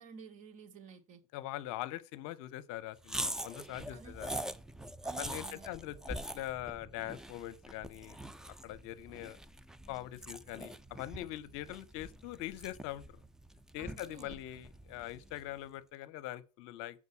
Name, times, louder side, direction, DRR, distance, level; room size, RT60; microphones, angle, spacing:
voice 1, 0.0-1.2 3.9-4.2 5.0-5.7 13.8-14.4, right 5 dB, 45° right, 1.7 m, -52 dB
voice 2, 1.3-4.3 5.2-8.2 8.5-9.4 9.9-13.2 13.7-17.0, left 15 dB, 55° left, 0.8 m, -42 dB
sound 1, 3.0-15.5, right 1 dB, 5° right, 0.4 m, -44 dB
8.0 x 4.9 x 6.9 m
hypercardioid pair, 110°, 18 cm